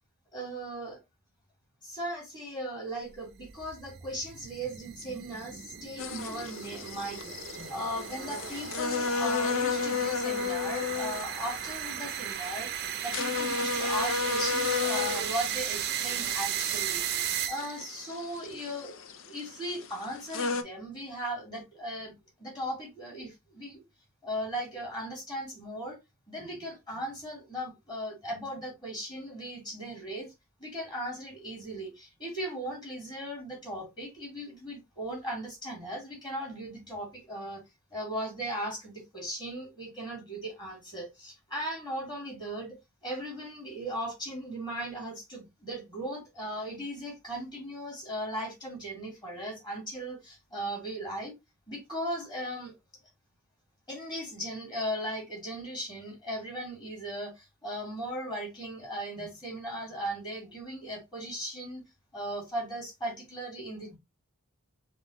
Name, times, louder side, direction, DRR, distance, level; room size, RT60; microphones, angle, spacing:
voice 1, 0.3-1.0 1.8-12.7 13.0-22.1 22.4-23.8 24.2-26.0 26.3-30.3 30.6-37.6 37.9-51.3 51.7-52.7 53.9-61.8 62.1-64.0, equal, 20° left, 2.4 m, -37 dB
sound 1, 3.1-17.9, right 10 dB, 50° right, 0.5 m, -36 dB
sound 2, 6.0-20.6, left 5 dB, 65° left, 0.5 m, -34 dB
5.4 x 2.4 x 2.9 m
head